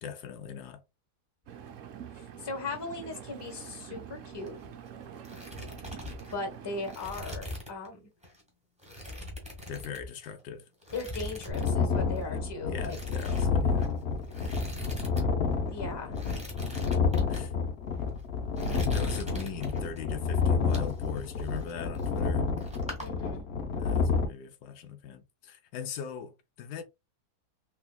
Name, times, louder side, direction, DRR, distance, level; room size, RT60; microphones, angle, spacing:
voice 1, 0.0-0.8 9.7-10.7 12.2-12.4 12.7-13.9 17.3-17.5 18.9-22.5 23.8-26.8, left 7 dB, 80° left, 1.1 m, -40 dB
Engine, 1.5-7.0, right 8 dB, 65° right, 0.8 m, -46 dB
voice 2, 2.2-4.6 6.3-8.1 10.9-13.0 15.7-16.2 23.0-23.5, left 3 dB, 20° left, 0.9 m, -38 dB
sound 1, 4.3-4.9 5.1-7.9 8.2-8.4 8.8-10.4 10.8-11.8 12.0-12.2 12.8-15.3 15.5-15.6 16.1-17.4 18.0-18.2 18.6-20.0 20.5-22.3 22.6-23.1, left 1 dB, 5° right, 1.2 m, -41 dB
sound 2, 11.5-24.3, left 5 dB, 55° left, 0.8 m, -29 dB
3.6 x 3.3 x 2.2 m
omnidirectional pair, 1.8 m